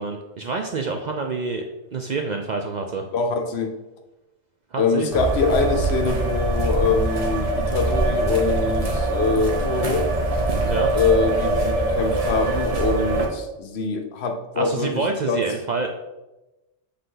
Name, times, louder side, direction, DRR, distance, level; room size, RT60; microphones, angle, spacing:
voice 1, 0.0-1.6 1.9-3.1 4.7-5.1 10.6-10.9 14.6-15.9, right 4 dB, 55° right, 4 dB, 0.5 m, -27 dB
voice 2, 3.1-3.7 4.8-10.1 10.9-15.4, left 4 dB, 70° left, 5 dB, 1.0 m, -24 dB
sound 1, 5.1-13.3, right 2 dB, 35° right, 0.9 m, -23 dB
7.8 x 3.4 x 3.8 m, 1.0 s
omnidirectional pair, 1.2 m